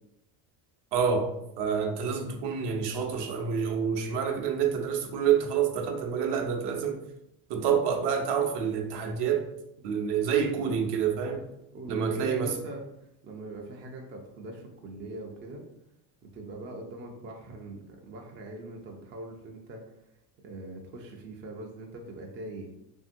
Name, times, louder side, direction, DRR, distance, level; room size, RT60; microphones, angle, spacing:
voice 1, 0.9-7.0 7.5-9.5 9.8-11.5 11.9-12.6, right 7 dB, 60° right, 4 dB, 0.6 m, -28 dB
voice 2, 11.7-15.6 16.2-20.0 20.4-22.7, right 2 dB, 30° right, 1 dB, 0.3 m, -42 dB
2.8 x 2.6 x 2.5 m, 0.83 s
supercardioid pair, 110°, 48 cm